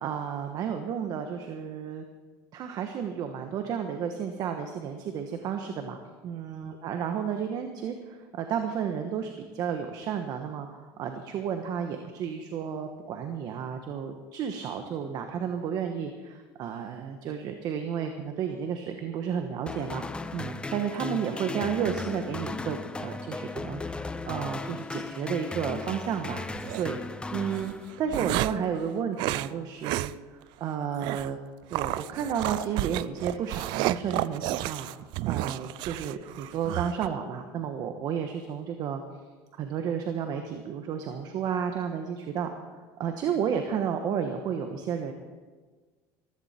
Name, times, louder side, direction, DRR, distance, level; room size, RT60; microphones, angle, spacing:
voice 1, 0.0-2.0 2.5-6.0 6.2-20.0 20.3-26.4 26.8-27.0 27.3-30.1 30.6-31.4 31.7-34.9 35.3-39.0 39.5-42.5 43.0-45.1, right 7 dB, 55° right, 6 dB, 1.2 m, -32 dB
sound 1, 19.7-28.2, left 3 dB, 10° left, 0.7 m, -37 dB
sound 2, 26.5-26.8 27.6-28.7 29.2-29.5 29.8-30.1 30.4-30.5 31.0-31.3 31.7-37.1, right 17 dB, 70° right, 0.4 m, -31 dB
15.5 x 14.5 x 4.4 m, 1.4 s
cardioid pair, 120°, 8 cm